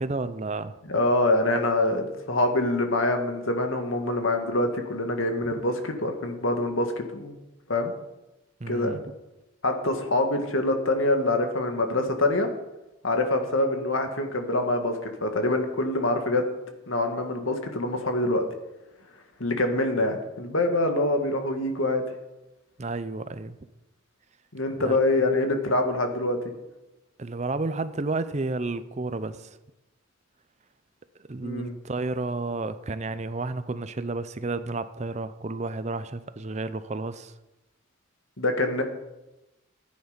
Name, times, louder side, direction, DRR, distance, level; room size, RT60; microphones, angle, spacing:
voice 1, 0.0-0.8 8.6-9.0 22.8-23.6 24.8-25.0 27.2-29.6 31.3-37.3, right 3 dB, 35° right, 13 dB, 0.5 m, -31 dB
voice 2, 0.9-7.3 7.7-7.9 8.7-9.0 9.6-12.5 13.0-16.4 16.9-18.5 19.4-22.0 24.5-26.4 31.4-31.7 38.4-38.8, left 2 dB, 80° left, 5 dB, 1.8 m, -25 dB
14.5 x 9.6 x 5.2 m, 0.98 s
head